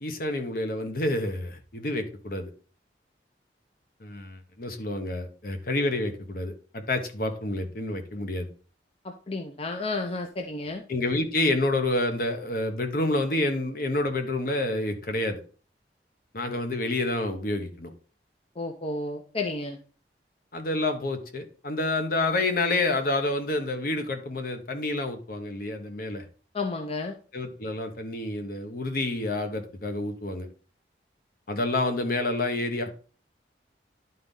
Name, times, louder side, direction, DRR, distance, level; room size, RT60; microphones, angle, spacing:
voice 1, 0.0-2.5 4.0-8.5 10.9-15.4 16.3-17.9 20.5-26.2 27.3-30.5 31.5-33.0, left 2 dB, 55° left, 6 dB, 1.1 m, -28 dB
voice 2, 9.0-10.8 18.6-19.8 26.5-27.2, left 3 dB, 35° left, 4 dB, 0.6 m, -32 dB
11.0 x 4.0 x 3.7 m, 0.39 s
head